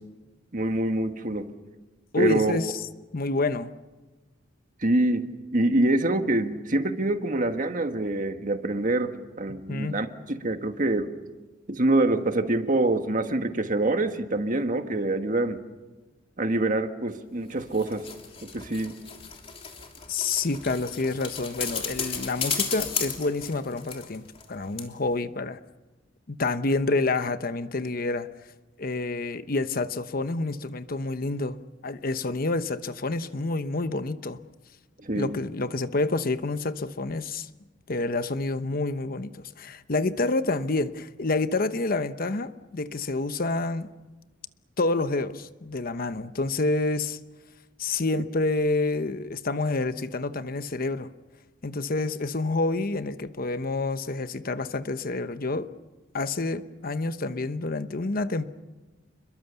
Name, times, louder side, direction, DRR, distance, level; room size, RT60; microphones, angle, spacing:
voice 1, 0.5-1.5 2.2-2.5 4.8-5.3 5.5-11.1 11.7-15.6 16.4-18.1 18.4-19.0 35.0-35.4, right 2 dB, 45° right, 7 dB, 1.6 m, -25 dB
voice 2, 2.1-2.7 3.1-3.7 9.7-10.0 20.1-25.6 26.3-28.3 28.8-31.6 31.8-34.4 35.1-37.5 37.9-43.9 44.8-47.2 47.8-51.1 51.6-55.7 56.1-58.5, left 3 dB, 50° left, 11 dB, 1.0 m, -28 dB
sound 1, 17.5-24.5 24.8-24.9, left 6 dB, 30° left, 3.2 m, -34 dB
29.5 x 22.0 x 7.0 m, 1.2 s
head